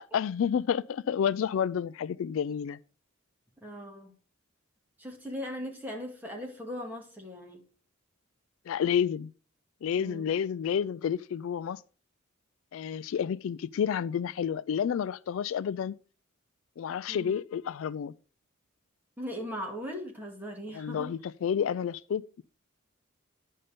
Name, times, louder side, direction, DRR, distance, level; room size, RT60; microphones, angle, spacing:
voice 1, 0.0-2.8 8.7-9.3 9.8-11.8 12.7-15.9 16.8-18.1 20.7-22.4, left 8 dB, 70° left, 0.3 m, -30 dB
voice 2, 3.6-4.1 5.0-7.6 10.0-10.3 17.1-17.4 19.2-21.2, equal, 10° right, 2.1 m, -39 dB
10.0 x 5.5 x 5.1 m
head